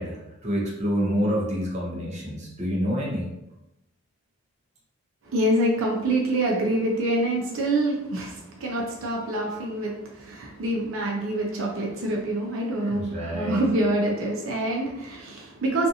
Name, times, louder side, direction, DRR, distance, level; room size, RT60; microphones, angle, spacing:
voice 1, 0.0-3.3 12.9-13.7, equal, 35° right, -5 dB, 0.7 m, -27 dB
voice 2, 5.3-15.9, right 1 dB, 80° right, -2 dB, 0.6 m, -26 dB
2.6 x 2.4 x 2.7 m, 0.89 s
head